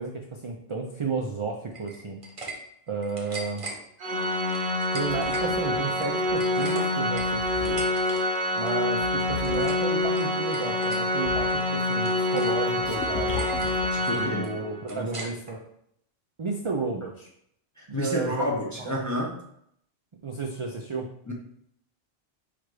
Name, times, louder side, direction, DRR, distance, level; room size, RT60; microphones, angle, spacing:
voice 1, 0.0-2.2 2.9-3.7 4.9-7.8 8.6-13.4 14.1-15.6 16.4-17.3 17.9-18.5 18.8-19.0 20.2-21.1, right 4 dB, 50° right, 0 dB, 0.3 m, -32 dB
sound 1, 1.7-2.6 2.9-3.8 4.5-5.5 5.8-8.2 8.5-8.8 9.2-9.9 10.2-11.0 11.5-12.6 12.9-13.0 13.3-13.8 14.1-15.6, right 2 dB, 35° right, 0.8 m, -40 dB
Organ, 4.0-14.8, left 1 dB, 70° right, 1.1 m, -26 dB
sound 2, 4.7-6.6 7.0-8.2 9.0-10.1 10.7-11.9 12.1-14.3, left 5 dB, 75° left, 0.9 m, -38 dB
voice 2, 13.9-14.5 14.9-15.1 17.8-19.3 21.3-21.4, left 1 dB, 20° left, -2 dB, 0.5 m, -30 dB
4.6 x 2.5 x 4.7 m, 0.71 s
omnidirectional pair, 1.2 m